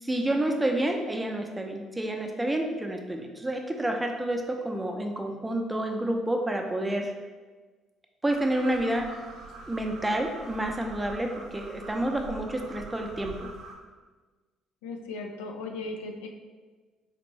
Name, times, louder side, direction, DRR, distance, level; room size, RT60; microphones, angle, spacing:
voice 1, 0.0-7.1 8.2-9.1 9.7-13.5, right 1 dB, 15° right, 3 dB, 0.6 m, -29 dB
sound 1, 8.3-13.8, right 3 dB, 70° right, 0.6 m, -44 dB
voice 2, 14.8-16.3, left 3 dB, 80° left, 3 dB, 0.3 m, -37 dB
4.2 x 2.5 x 3.1 m, 1.4 s
hypercardioid pair, 50°, 0 cm